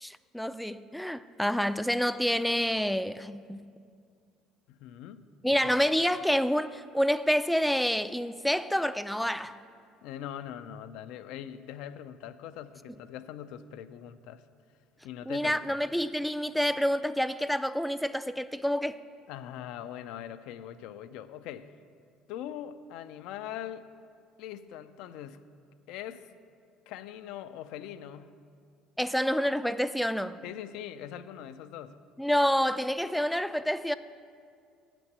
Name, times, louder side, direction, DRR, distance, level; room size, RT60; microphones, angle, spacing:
voice 1, 0.0-3.6 5.4-9.5 15.3-19.0 29.0-30.4 32.2-33.9, equal, ahead, 0.3 m, -28 dB
voice 2, 4.7-5.2 5.5-5.8 10.0-14.4 15.0-15.8 19.3-21.7 22.3-23.9 24.4-25.4 25.9-26.3 26.9-28.3 30.4-32.0, left 10 dB, 75° left, 0.4 m, -42 dB
8.0 x 6.1 x 7.9 m
supercardioid pair, 95°, 0 cm